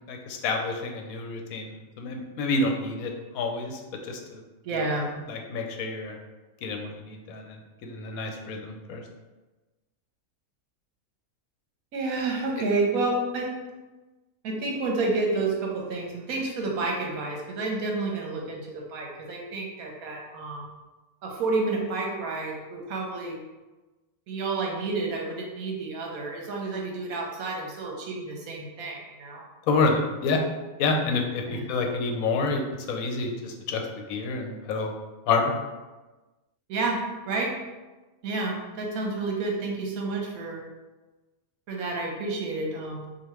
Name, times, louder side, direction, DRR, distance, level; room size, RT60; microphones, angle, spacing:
voice 1, 0.1-4.4 5.3-6.2 6.6-9.0 29.7-30.4 30.8-34.9 35.3-35.5, left 3 dB, 75° left, 3 dB, 1.0 m, -28 dB
voice 2, 4.6-5.1 11.9-13.5 14.4-20.7 21.2-23.4 24.3-29.4 31.5-31.6 36.7-37.6 38.2-40.6 41.7-43.1, right 3 dB, 75° right, 0 dB, 1.2 m, -30 dB
5.0 x 2.4 x 3.0 m, 1.2 s
omnidirectional pair, 1.5 m